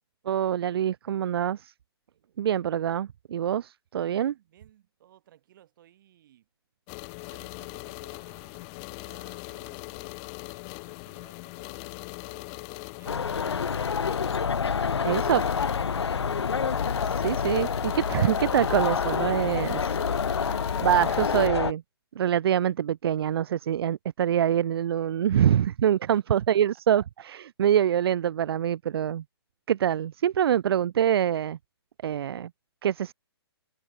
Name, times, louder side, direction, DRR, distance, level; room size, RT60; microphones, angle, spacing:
voice 1, 0.2-1.7 2.4-4.3 15.0-15.4 17.0-20.0 20.4-21.8 22.2-29.2 29.7-31.6 32.0-32.5 32.8-33.1, right 10 dB, 65° right, 0.4 m, -25 dB
voice 2, 4.0-6.5 7.3-12.0 12.2-14.3 15.9-16.7 26.1-26.6 32.0-32.4, right 12 dB, 50° right, 6.4 m, -59 dB
sound 1, 6.9-21.5, left 37 dB, 30° left, 2.3 m, -40 dB
sound 2, 13.1-21.7, left 6 dB, 85° left, 0.8 m, -27 dB
hypercardioid pair, 135°, 14 cm